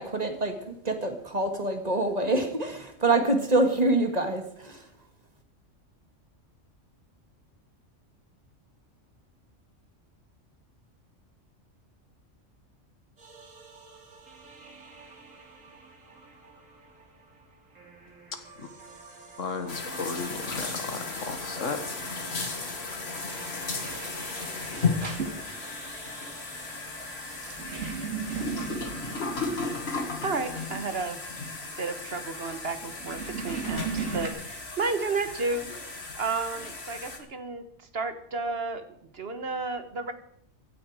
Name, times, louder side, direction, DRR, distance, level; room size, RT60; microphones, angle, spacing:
voice 1, 0.0-4.9, right 2 dB, 30° right, 6 dB, 1.9 m, -26 dB
sound 1, 13.2-27.7, right 3 dB, 90° right, 3.0 m, -50 dB
voice 2, 18.3-18.7 19.4-21.8, left 4 dB, 80° left, 8 dB, 1.9 m, -35 dB
sound 2, 19.7-37.2, left 3 dB, 55° left, 2.2 m, -35 dB
sound 3, 23.8-34.3, right 5 dB, 70° right, 2.4 m, -37 dB
voice 3, 30.2-31.2 31.8-38.8 39.1-40.1, right 3 dB, 55° right, 9 dB, 1.5 m, -32 dB
16.0 x 13.0 x 4.8 m, 0.69 s
omnidirectional pair, 1.3 m